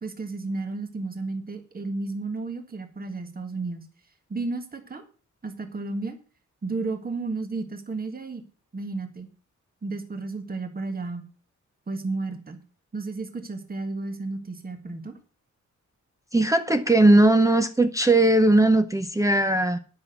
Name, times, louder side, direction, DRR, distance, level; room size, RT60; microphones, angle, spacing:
voice 1, 0.0-3.9 4.3-5.0 5.4-6.2 6.6-8.4 8.7-9.3 9.8-11.3 11.9-12.6 12.9-15.1, right 3 dB, 30° right, 1.6 m, -32 dB
voice 2, 16.3-19.8, right 2 dB, 10° right, 0.6 m, -19 dB
10.5 x 6.0 x 6.6 m
wide cardioid pair, 155°, 30 cm